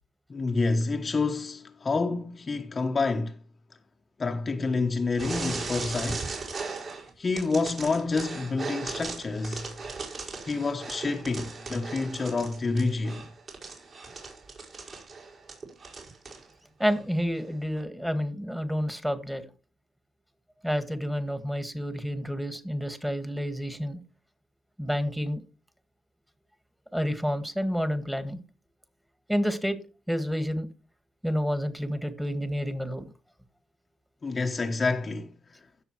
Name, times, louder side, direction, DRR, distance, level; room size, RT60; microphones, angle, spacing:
voice 1, 0.3-3.4 4.2-6.3 7.2-9.7 10.4-13.2 34.2-35.3, left 3 dB, 35° left, 1.0 m, -28 dB
sound 1, 5.2-7.1 7.4-16.4 16.8-17.0 17.8-17.9, right 4 dB, 50° right, 5.2 m, -38 dB
voice 2, 16.8-19.4 20.6-24.0 24.8-25.4 26.9-28.4 29.3-29.8 30.1-30.7 31.2-33.0, equal, 5° right, 1.7 m, -29 dB
16.5 x 6.7 x 3.1 m
cardioid pair, 90°, 0 cm